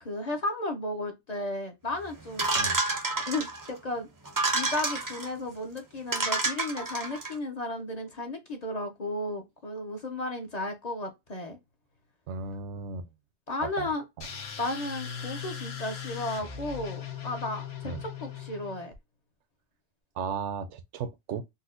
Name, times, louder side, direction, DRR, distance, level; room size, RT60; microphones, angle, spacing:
voice 1, 0.0-2.5 3.3-4.1 4.5-11.6 13.5-14.0 14.6-18.9, left 2 dB, 45° left, 0.7 m, -34 dB
sound 1, 2.4-3.7 4.3-5.3 5.8-5.9 6.1-7.3, right 3 dB, 30° right, 0.4 m, -29 dB
voice 2, 12.3-13.1 13.6-13.9 14.2-14.3 17.8-18.0 20.2-21.4, right 5 dB, 85° right, 0.9 m, -35 dB
sound 2, 14.2-19.0, left 7 dB, 65° left, 1.0 m, -39 dB
4.0 x 2.2 x 2.4 m
omnidirectional pair, 1.2 m